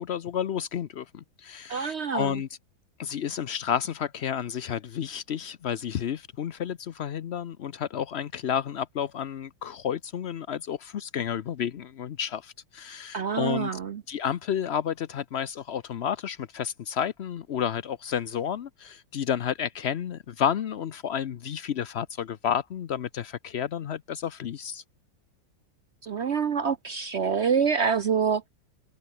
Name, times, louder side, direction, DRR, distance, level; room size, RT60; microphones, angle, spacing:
voice 1, 0.0-2.6 3.0-13.7 14.1-24.8, left 8 dB, 85° left, 0.5 m, -31 dB
voice 2, 1.7-2.3 13.1-14.0 26.0-28.5, right 6 dB, 60° right, 0.7 m, -26 dB
omnidirectional pair, 2.1 m